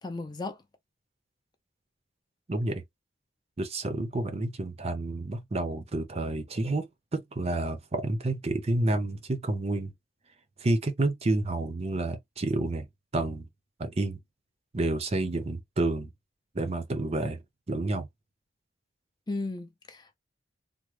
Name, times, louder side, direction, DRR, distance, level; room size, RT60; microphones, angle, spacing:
voice 1, 0.0-0.6 19.3-20.2, left 3 dB, 20° left, 0.4 m, -35 dB
voice 2, 2.5-2.8 3.6-9.9 10.6-12.9 13.1-13.5 13.8-14.2 14.7-16.1 16.5-17.4 17.7-18.1, right 2 dB, 30° right, 0.6 m, -29 dB
3.5 x 2.0 x 3.1 m
head